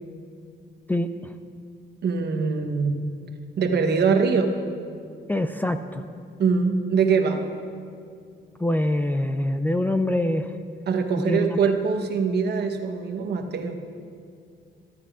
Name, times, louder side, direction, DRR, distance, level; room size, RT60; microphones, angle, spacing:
voice 1, 0.9-1.3 5.3-6.0 8.6-10.5 11.3-11.7, left 1 dB, 10° left, 7 dB, 0.4 m, -25 dB
voice 2, 2.0-3.0 3.6-4.5 6.4-7.4 10.9-13.8, right 5 dB, 55° right, 5 dB, 1.1 m, -23 dB
14.5 x 13.0 x 2.5 m, 2.3 s
cardioid pair, 90°, 20 cm